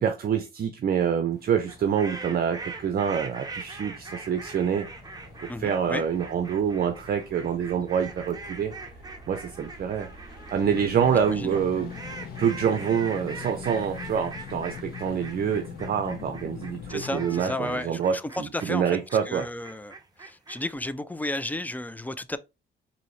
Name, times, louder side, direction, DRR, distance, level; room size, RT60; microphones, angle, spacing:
voice 1, 0.0-4.9 5.6-8.7 9.3-10.1 10.5-11.9 12.4-19.5, right 8 dB, 50° right, 0.6 m, -26 dB
sound 1, 1.3-17.1, left 1 dB, 50° left, 1.2 m, -49 dB
sound 2, 1.6-20.7, right 3 dB, 20° right, 0.9 m, -42 dB
voice 2, 5.5-6.0 11.3-11.6 16.9-19.0 19.3-19.9 20.2-22.4, left 1 dB, 10° left, 0.3 m, -33 dB
sound 3, 10.6-17.4, left 8 dB, 75° left, 0.9 m, -40 dB
4.0 x 2.8 x 3.1 m
cardioid pair, 90°, 20 cm